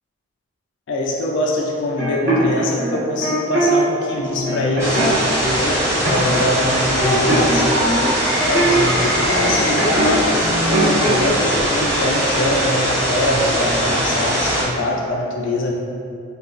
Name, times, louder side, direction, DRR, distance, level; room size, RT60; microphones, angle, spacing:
voice 1, 0.9-7.8 8.4-15.7, left 1 dB, 60° left, -1 dB, 0.4 m, -23 dB
sound 1, 2.0-3.7 4.2-5.4 6.0-6.4 6.7-10.2 10.4-11.3, right 1 dB, 60° right, 0.9 m, -21 dB
sound 2, 4.8-14.6, equal, 15° right, 0.8 m, -20 dB
5.3 x 2.3 x 2.5 m, 2.5 s
head